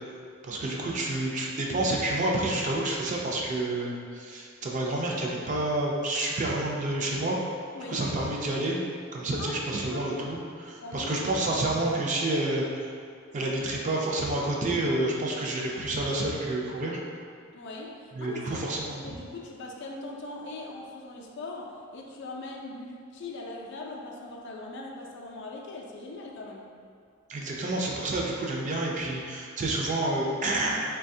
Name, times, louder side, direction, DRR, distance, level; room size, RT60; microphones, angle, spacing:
voice 1, 0.4-7.4 7.9-8.8 9.1-12.9 13.3-17.0 18.1-19.0 27.3-30.7, right 2 dB, 40° right, -2 dB, 0.4 m, -29 dB
voice 2, 10.8-11.3 17.5-26.7, left 2 dB, 60° left, 0 dB, 0.4 m, -40 dB
4.1 x 2.2 x 2.6 m, 2.3 s
head